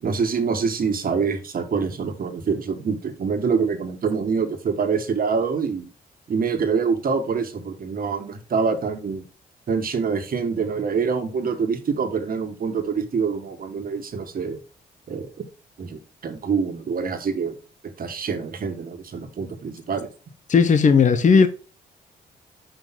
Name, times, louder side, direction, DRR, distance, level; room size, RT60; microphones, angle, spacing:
voice 1, 0.0-5.9 6.3-9.2 9.7-14.6 15.1-15.3 15.8-17.6 18.0-20.1, right 5 dB, 55° right, 1.6 m, -25 dB
voice 2, 20.5-21.5, left 5 dB, 45° left, 0.8 m, -15 dB
5.8 x 5.2 x 3.7 m
supercardioid pair, 60°, 18 cm